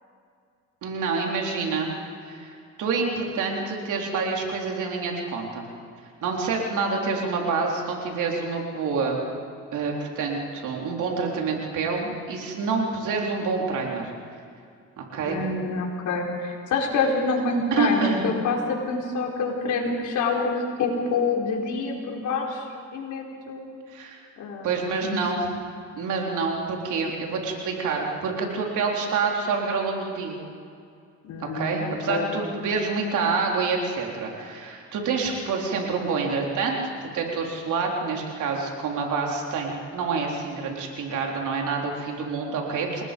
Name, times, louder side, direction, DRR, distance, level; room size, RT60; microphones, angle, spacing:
voice 1, 0.8-1.9 2.2-5.7 6.2-9.2 9.7-14.1 15.0-15.4 17.7-18.3 23.9-24.2 24.6-25.5 26.0-30.4 31.5-36.8 37.1-43.0, right 4 dB, 80° right, 0 dB, 4.0 m, -27 dB
voice 2, 15.2-20.5 20.8-22.6 22.9-23.7 24.4-25.2 31.3-32.3, left 4 dB, 75° left, -1 dB, 4.4 m, -27 dB
29.0 x 19.5 x 5.4 m, 2.4 s
cardioid pair, 90°, 30 cm